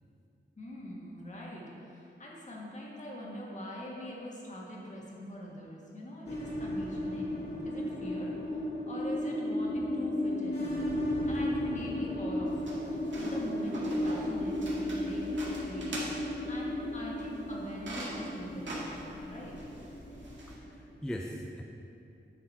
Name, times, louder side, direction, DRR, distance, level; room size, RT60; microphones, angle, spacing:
voice 1, 0.6-10.7 11.3-15.3 15.7-16.0 16.4-19.5, equal, 40° left, -4 dB, 1.8 m, -43 dB
sound 1, 6.3-20.9, left 1 dB, 65° left, 2.2 m, -34 dB
sound 2, 12.5-20.5, right 1 dB, 80° right, 1.9 m, -44 dB
voice 2, 20.5-21.6, equal, 5° left, 0 dB, 0.5 m, -40 dB
10.0 x 6.5 x 4.3 m, 2.7 s
wide cardioid pair, 120°, 19 cm